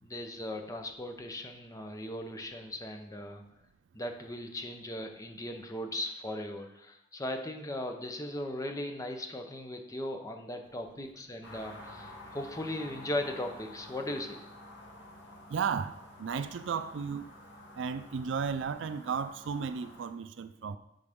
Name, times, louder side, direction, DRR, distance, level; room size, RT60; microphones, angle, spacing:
voice 1, 0.0-3.4 3.9-14.4, left 1 dB, 20° left, 4 dB, 0.7 m, -38 dB
sound 1, 11.4-20.1, left 1 dB, 65° left, 1.4 m, -50 dB
voice 2, 15.5-17.3 17.8-20.8, right 6 dB, 75° right, 12 dB, 0.4 m, -34 dB
11.5 x 3.9 x 3.6 m, 0.84 s
head